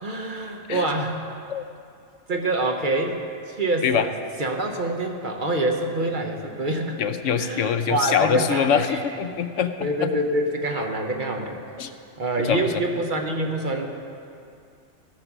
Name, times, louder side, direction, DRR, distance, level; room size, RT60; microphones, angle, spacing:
voice 1, 0.0-1.3 2.3-3.2 3.5-4.1 4.4-7.0 7.4-9.0 9.8-11.6 12.2-13.9, right 1 dB, 45° right, 2 dB, 1.0 m, -26 dB
voice 2, 7.0-10.1 11.8-11.9 12.4-12.7, left 8 dB, 75° left, 9 dB, 0.9 m, -24 dB
16.0 x 6.7 x 6.0 m, 2.5 s
omnidirectional pair, 1.3 m